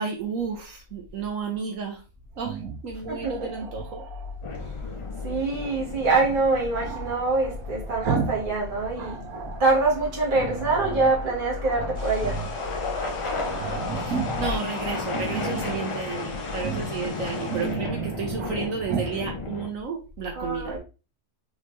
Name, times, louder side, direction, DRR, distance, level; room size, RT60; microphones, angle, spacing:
voice 1, 0.0-2.0 2.4-4.0 14.0-20.8, right 5 dB, 70° right, 1.1 m, -32 dB
Growling, 2.4-4.4 6.7-8.5 8.8-9.7 10.3-11.2 11.6-12.6 12.9-13.0 13.2-14.6 15.0-15.8 16.5-17.0 17.3-18.5 18.9-19.2, right 6 dB, 90° right, 1.2 m, -33 dB
sound 1, 4.4-19.7, left 3 dB, 40° left, 0.4 m, -35 dB
voice 2, 5.2-9.3 9.6-12.5 20.3-20.8, right 3 dB, 35° right, 1.6 m, -24 dB
sound 2, 11.9-17.8, left 4 dB, 75° left, 1.3 m, -39 dB
3.8 x 3.6 x 3.1 m
omnidirectional pair, 1.5 m